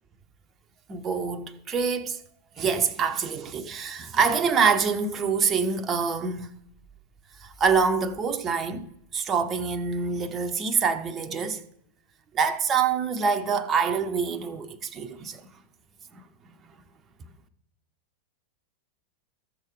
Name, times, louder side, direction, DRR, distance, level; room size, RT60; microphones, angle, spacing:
voice 1, 0.9-2.2 2.6-6.5 7.4-8.9 9.1-11.6 12.3-15.4 16.1-16.2, right 5 dB, 25° right, 0.9 m, -25 dB
14.5 x 6.5 x 4.8 m
figure-of-eight pair, 90°, 0 cm